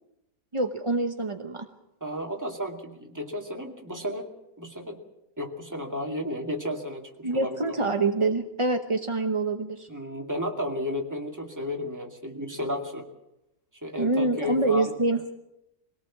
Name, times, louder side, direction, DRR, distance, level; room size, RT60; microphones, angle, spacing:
voice 1, 0.5-1.7 7.2-9.9 14.0-15.3, right 3 dB, 30° right, 5 dB, 0.6 m, -26 dB
voice 2, 2.0-5.0 5.4-7.6 7.9-8.0 9.9-13.1 13.8-14.9, left 1 dB, 10° right, 2 dB, 2.2 m, -33 dB
22.5 x 17.5 x 7.3 m, 0.86 s
omnidirectional pair, 2.0 m